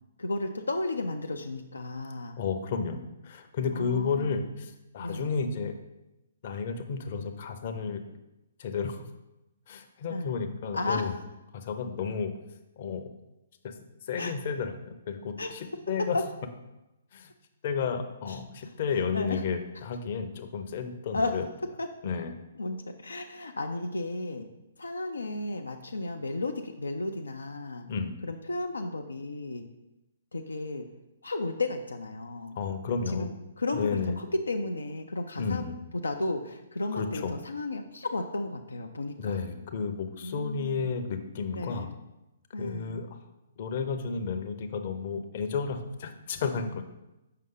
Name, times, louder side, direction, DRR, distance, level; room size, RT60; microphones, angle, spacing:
voice 1, 0.2-2.4 3.7-4.4 5.0-5.4 10.1-10.3 10.7-11.1 14.2-14.3 15.4-15.5 16.0-16.2 18.3-18.7 19.1-19.4 21.1-21.4 21.8-21.9 22.6-24.5 24.8-27.9 28.2-29.6 30.3-30.9 31.2-32.6 33.1-35.6 35.9-39.4 40.2-40.9 41.5-41.9 42.5-43.0, left 2 dB, 80° left, 4 dB, 0.5 m, -33 dB
voice 2, 2.4-5.7 6.4-8.0 8.6-9.0 9.7-11.1 11.5-12.3 12.8-13.1 13.6-13.7 14.1-16.2 17.1-17.3 17.6-21.5 22.0-22.3 27.9-28.1 32.6-33.3 33.7-34.2 35.4-35.7 36.9-37.3 39.2-41.9 42.6-43.2 43.6-46.8, left 5 dB, 45° left, 7 dB, 0.7 m, -32 dB
6.6 x 5.3 x 3.8 m, 0.96 s
figure-of-eight pair, 125°, 0 cm